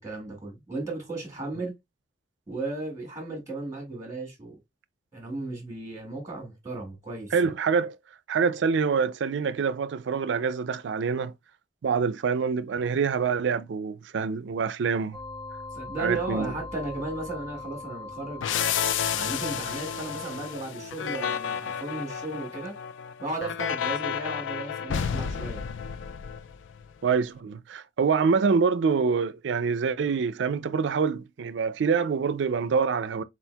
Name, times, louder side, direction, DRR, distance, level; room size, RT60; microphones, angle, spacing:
voice 1, 0.0-1.7 2.5-4.6 5.1-7.5 15.7-18.7 19.1-22.7 23.2-25.6, right 2 dB, 15° right, 2.0 m, -35 dB
voice 2, 7.3-8.0 8.3-11.3 11.8-15.2 16.0-16.5 27.0-33.2, right 5 dB, 70° right, 0.4 m, -26 dB
sound 1, 15.1-20.5, left 3 dB, ahead, 1.3 m, -41 dB
sound 2, 18.4-26.9, left 8 dB, 85° left, 0.4 m, -31 dB
4.4 x 4.1 x 2.2 m
head